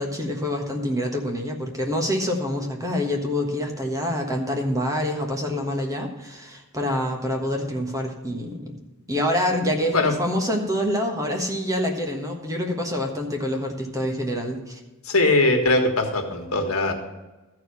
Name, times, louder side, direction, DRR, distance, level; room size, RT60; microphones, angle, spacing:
voice 1, 0.0-8.8 9.1-14.8, left 1 dB, 15° right, 2 dB, 1.4 m, -26 dB
voice 2, 15.0-16.9, left 2 dB, 80° left, 4 dB, 1.7 m, -21 dB
13.5 x 4.8 x 6.9 m, 1.1 s
head